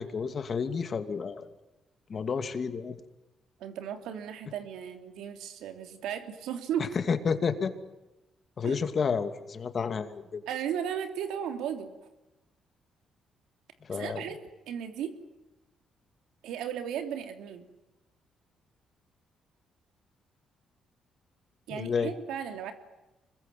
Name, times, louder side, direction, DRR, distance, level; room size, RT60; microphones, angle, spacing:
voice 1, 0.0-1.5 2.1-3.0 6.9-7.7 8.6-10.4 13.8-14.2 21.7-22.1, left 6 dB, 45° left, 9 dB, 2.6 m, -30 dB
voice 2, 3.6-7.0 8.6-8.8 10.5-12.1 13.9-14.4 14.7-15.2 16.4-17.6 21.7-22.7, right 9 dB, 85° right, 7 dB, 3.2 m, -35 dB
25.5 x 22.0 x 9.4 m, 1.0 s
cardioid pair, 90°, 0 cm